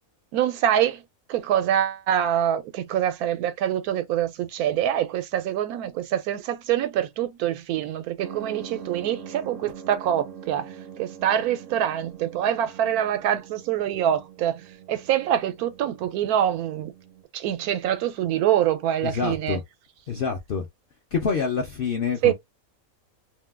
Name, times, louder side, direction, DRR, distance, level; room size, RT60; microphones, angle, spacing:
voice 1, 0.3-1.0 1.3-16.9 17.3-19.6 22.2-22.3, right 10 dB, 90° right, 1.1 m, -25 dB
sound 1, 8.2-17.2, right 7 dB, 70° right, 0.8 m, -43 dB
voice 2, 19.0-19.6 20.1-20.6 21.1-22.3, left 5 dB, 70° left, 0.5 m, -26 dB
2.7 x 2.2 x 3.3 m
omnidirectional pair, 1.5 m